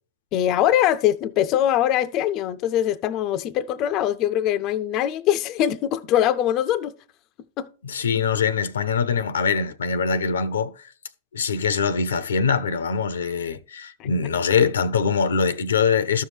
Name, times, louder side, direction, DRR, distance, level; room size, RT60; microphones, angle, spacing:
voice 1, 0.3-6.9 7.6-7.7 14.0-14.1, left 11 dB, 40° left, 0.4 m, -22 dB
voice 2, 7.8-10.9 11.3-16.2, left 5 dB, 85° left, 0.6 m, -23 dB
13.0 x 5.5 x 3.2 m
hypercardioid pair, 115°, 0 cm